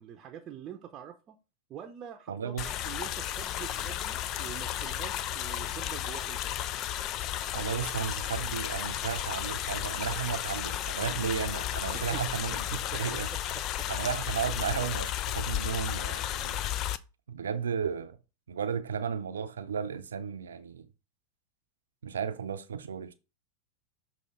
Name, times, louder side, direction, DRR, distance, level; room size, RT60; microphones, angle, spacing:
voice 1, 0.0-1.4 1.7-6.5 11.9-12.2 12.9-13.0 13.5-13.9, right 9 dB, 40° right, 0.7 m, -45 dB
voice 2, 2.3-2.7 7.5-13.3 13.9-16.9 17.3-18.2 18.5-20.9 22.0-23.1, right 7 dB, 85° right, 0.6 m, -34 dB
sound 1, 2.6-17.0, left 12 dB, 45° left, 0.4 m, -33 dB
6.7 x 2.8 x 5.6 m
hypercardioid pair, 90°, 0 cm